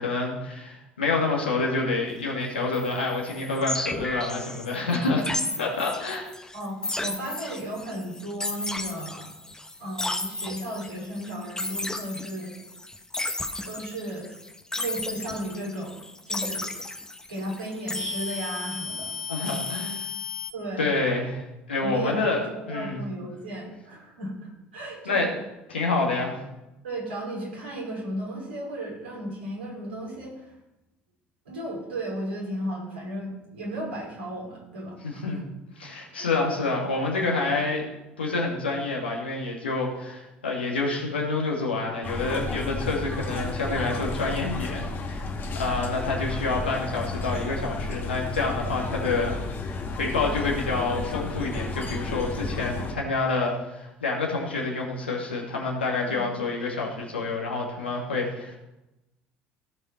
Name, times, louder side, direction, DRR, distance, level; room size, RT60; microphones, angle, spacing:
voice 1, 0.0-5.3 5.6-6.3 19.3-20.1 20.8-23.0 25.0-25.3 25.7-26.4 35.0-35.4 35.8-37.8 38.2-45.2 45.5-58.6, left 3 dB, 85° left, -2 dB, 2.5 m, -28 dB
sound 1, 2.7-20.5, left 2 dB, 10° left, 1.3 m, -34 dB
voice 2, 6.5-9.3 9.8-12.6 13.6-14.3 14.8-16.0 16.2-16.7 17.3-19.1 20.5-20.9 21.8-25.3 26.8-30.5 31.4-35.4 36.2-36.3 56.1-56.4, right 1 dB, 80° right, -4 dB, 4.7 m, -35 dB
sound 2, 42.0-52.9, left 3 dB, 40° left, 1.7 m, -32 dB
16.5 x 5.7 x 4.5 m, 0.96 s
figure-of-eight pair, 60°, 6 cm